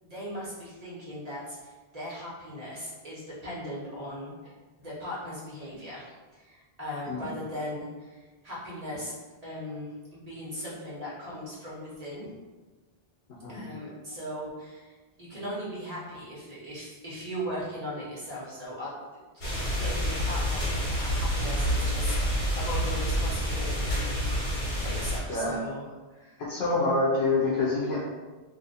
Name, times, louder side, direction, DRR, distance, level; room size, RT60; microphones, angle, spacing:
voice 1, 0.0-4.3 4.8-9.1 9.4-12.3 13.5-25.8 26.1-26.4, equal, 40° right, -7 dB, 1.2 m, -39 dB
sound 1, 19.4-25.2, equal, 65° left, 1.4 m, -28 dB
voice 2, 26.4-28.0, left 3 dB, 80° left, -6 dB, 0.9 m, -26 dB
2.7 x 2.5 x 4.0 m, 1.3 s
omnidirectional pair, 1.1 m